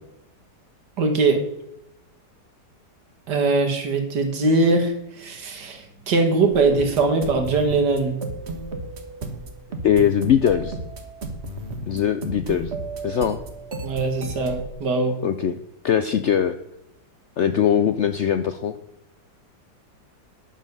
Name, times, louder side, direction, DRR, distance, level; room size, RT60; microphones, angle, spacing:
voice 1, 1.0-1.4 3.3-8.2 13.8-15.1, right 3 dB, 75° right, 5 dB, 2.3 m, -21 dB
sound 1, 6.5-14.7, right 2 dB, 40° right, 1.4 m, -33 dB
voice 2, 9.8-10.8 11.9-12.7 13.0-13.4 15.2-15.6 15.8-16.6 17.4-18.7, left 9 dB, 75° left, 10 dB, 0.6 m, -21 dB
10.5 x 6.4 x 6.7 m, 0.83 s
omnidirectional pair, 1.8 m